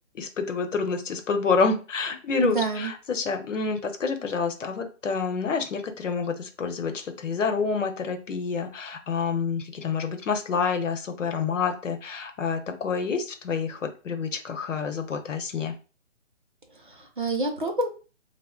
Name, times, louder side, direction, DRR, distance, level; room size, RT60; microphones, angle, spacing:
voice 1, 0.1-15.7, left 5 dB, 75° left, 6 dB, 0.8 m, -28 dB
voice 2, 2.4-2.9 16.8-17.9, right 3 dB, 45° right, 4 dB, 0.5 m, -27 dB
2.8 x 2.0 x 3.7 m, 0.35 s
hypercardioid pair, 175°, 37 cm